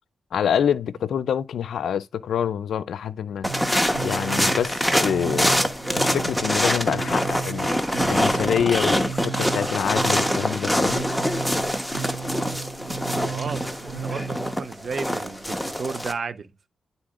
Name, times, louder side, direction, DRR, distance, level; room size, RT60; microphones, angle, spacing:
voice 1, 0.3-3.5 4.0-5.7 6.0-7.7 8.1-11.0, left 8 dB, 85° left, 0.4 m, -26 dB
sound 1, 3.4-16.1, equal, 5° left, 1.1 m, -25 dB
sound 2, 3.4-14.6, right 6 dB, 85° right, 2.2 m, -35 dB
voice 2, 12.9-16.7, right 5 dB, 60° right, 0.8 m, -34 dB
11.5 x 4.0 x 2.5 m
cardioid pair, 75°, 0 cm